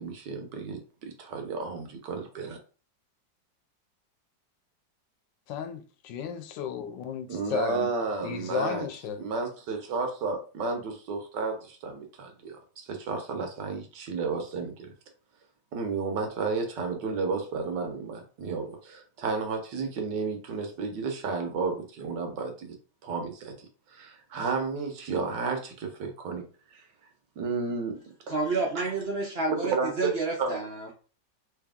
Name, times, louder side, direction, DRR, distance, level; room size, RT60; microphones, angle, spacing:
voice 1, 0.0-2.6 7.3-8.9 9.2-14.9 15.7-22.8 23.0-23.5 23.9-26.9 27.4-28.0 28.8-28.9 29.6-30.1 30.4-30.5, right 4 dB, 75° right, 1.5 m, -32 dB
voice 2, 5.5-7.9 8.2-9.2, left 7 dB, 80° left, 1.3 m, -34 dB
voice 3, 28.3-30.9, right 3 dB, 50° right, 0.8 m, -30 dB
3.3 x 2.8 x 3.6 m
omnidirectional pair, 2.0 m